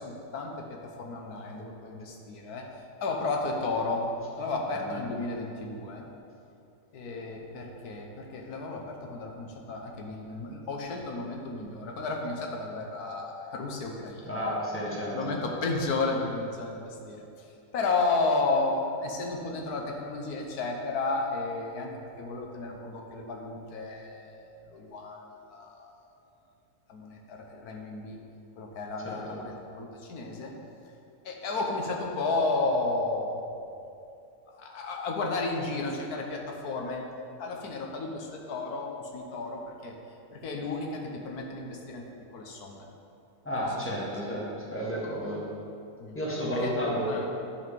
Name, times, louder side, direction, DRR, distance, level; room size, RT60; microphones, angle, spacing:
voice 1, 0.0-2.7 3.0-4.1 4.4-6.1 6.9-14.6 15.1-17.5 17.7-26.0 26.9-28.2 28.6-30.5 31.2-33.4 34.5-40.0 40.3-42.0 42.3-42.8 43.6-44.4 46.0-46.2 46.5-46.8 47.1-47.3, left 3 dB, 90° left, 1 dB, 1.5 m, -33 dB
voice 2, 14.2-15.2 29.0-29.4 43.4-45.4 46.1-47.1, equal, 10° left, -5 dB, 1.7 m, -31 dB
11.0 x 4.8 x 5.3 m, 2.7 s
omnidirectional pair, 1.6 m